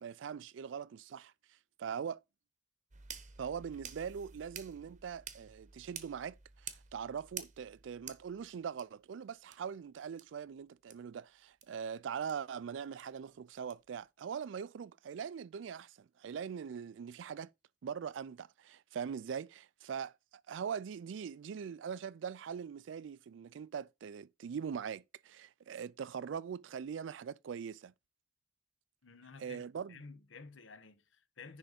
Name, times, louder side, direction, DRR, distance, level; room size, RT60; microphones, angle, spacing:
voice 1, 0.0-1.3 1.8-2.2 3.4-6.4 6.6-17.5 17.8-20.1 20.5-27.9 29.4-30.0, right 7 dB, 70° right, 0.3 m, -42 dB
sound 1, 2.9-8.8 9.5-9.6 10.2-10.3 10.9-11.0 11.6-11.7 12.3-12.4 13.0-13.1 13.7-13.8, right 8 dB, 40° right, 0.9 m, -49 dB
voice 2, 29.0-29.6 29.9-31.6, left 4 dB, 75° left, 0.9 m, -52 dB
10.0 x 3.5 x 5.1 m
head